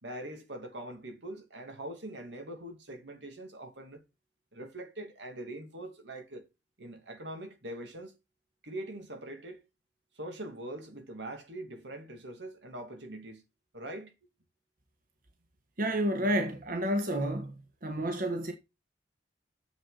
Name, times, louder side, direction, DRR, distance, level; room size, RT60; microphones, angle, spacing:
voice 1, 0.0-4.0 4.5-6.4 6.8-8.1 8.6-9.6 10.1-13.4 13.7-14.1, right 1 dB, 85° right, 2.8 m, -42 dB
voice 2, 15.8-17.5 17.8-18.5, right 1 dB, 55° right, 1.7 m, -30 dB
10.0 x 7.6 x 4.2 m
head